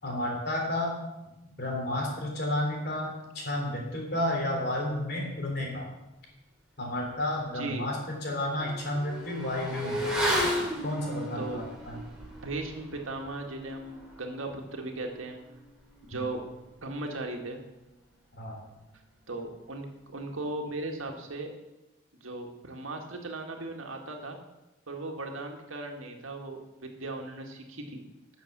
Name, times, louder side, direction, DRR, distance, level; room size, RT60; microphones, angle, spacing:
voice 1, 0.0-1.0 1.4-5.9 6.8-10.1 10.8-12.0 16.1-16.2 18.3-18.6, left 1 dB, 50° left, 0 dB, 3.5 m, -31 dB
Motorcycle / Accelerating revving vroom, 7.8-17.6 17.8-17.9, equal, 5° right, 3.2 m, -35 dB
voice 2, 12.3-15.4 16.0-16.4 16.8-17.6 19.3-21.5 22.2-24.4 24.9-28.0, right 2 dB, 85° right, 2 dB, 1.9 m, -37 dB
12.5 x 7.0 x 7.5 m, 0.98 s
head